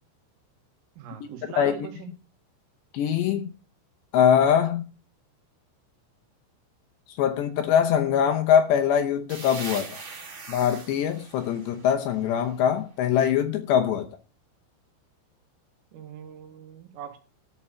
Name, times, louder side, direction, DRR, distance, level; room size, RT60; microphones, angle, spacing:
voice 1, 1.0-2.1 15.9-17.2, right 9 dB, 85° right, 4.3 m, -41 dB
voice 2, 2.9-3.5 4.1-4.9 7.2-10.0 10.5-14.1, left 8 dB, 75° left, 2.7 m, -22 dB
sound 1, 9.3-12.9, right 4 dB, 30° right, 2.6 m, -42 dB
13.5 x 4.7 x 8.5 m
omnidirectional pair, 5.8 m